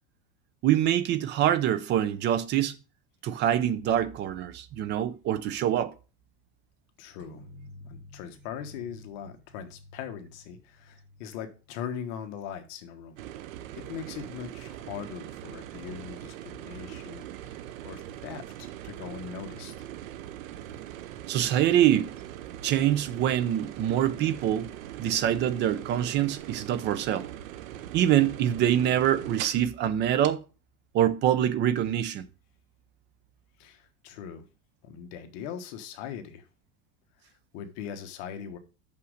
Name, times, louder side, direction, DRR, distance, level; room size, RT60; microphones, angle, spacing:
voice 1, 0.6-2.8 3.2-5.9 21.3-22.1 22.6-24.7 25.0-27.3 27.9-30.4 30.9-32.2, right 11 dB, 25° right, 0.5 m, -25 dB
voice 2, 7.0-7.4 7.9-13.2 13.7-19.9 33.6-34.5 34.8-36.4 37.5-38.6, left 8 dB, 55° left, 1.3 m, -40 dB
sound 1, 7.2-12.7, left 2 dB, 55° right, 4.4 m, -51 dB
sound 2, 13.2-29.7 30.2-30.3, right 12 dB, 75° right, 0.9 m, -41 dB
6.3 x 5.7 x 6.4 m
supercardioid pair, 160°, 40 cm